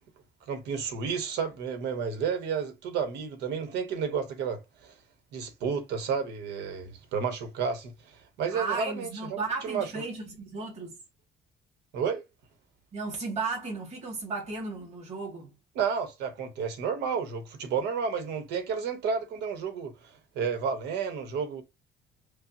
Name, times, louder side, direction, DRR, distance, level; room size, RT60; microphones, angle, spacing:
voice 1, 0.5-4.9 5.3-9.9 11.9-12.2 15.7-21.6, right 6 dB, 80° right, 1.1 m, -31 dB
voice 2, 8.5-11.0 12.9-15.5, right 3 dB, 40° right, 2.0 m, -34 dB
5.1 x 2.0 x 2.7 m
cardioid pair, 110°, 17 cm